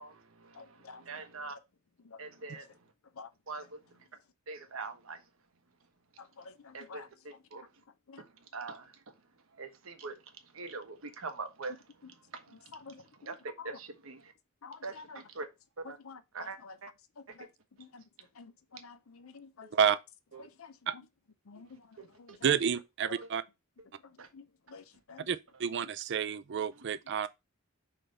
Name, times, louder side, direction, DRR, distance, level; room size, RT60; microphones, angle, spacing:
voice 1, 0.0-1.5 2.2-2.7 3.5-3.8 4.5-5.2 6.7-7.6 8.2-8.9 9.6-10.2 10.5-11.8 12.3-14.3 14.8-15.5 15.8-16.0 16.3-16.9 19.6-19.7 20.3-20.5 22.0-22.4 23.1-23.3 24.2-24.3, right 3 dB, 85° right, 1.2 m, -43 dB
voice 2, 0.5-1.2 2.0-2.2 3.2-3.3 6.2-7.1 8.1-8.2 12.7-13.7 14.6-15.2 15.8-16.8 17.2-17.5 17.8-18.0 18.4-19.7 20.4-21.0 21.5-22.6 23.0-23.2 24.0-25.3, left 4 dB, 85° left, 0.6 m, -50 dB
voice 3, 22.4-23.4 25.3-27.3, right 7 dB, 60° right, 0.4 m, -29 dB
5.6 x 3.3 x 5.3 m
head